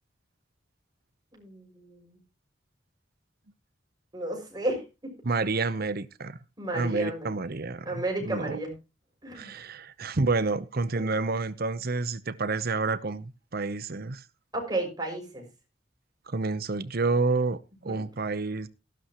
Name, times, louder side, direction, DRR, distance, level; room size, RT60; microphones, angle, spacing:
voice 1, 1.3-2.2 4.1-5.1 6.6-7.3 7.8-8.7 9.2-9.5 10.9-11.0 14.5-15.4 17.8-18.0, right 1 dB, 20° right, 6.3 m, -33 dB
voice 2, 5.2-6.4 6.7-8.6 9.3-14.2 16.3-18.7, right 3 dB, 55° right, 0.9 m, -29 dB
14.5 x 12.5 x 3.0 m
head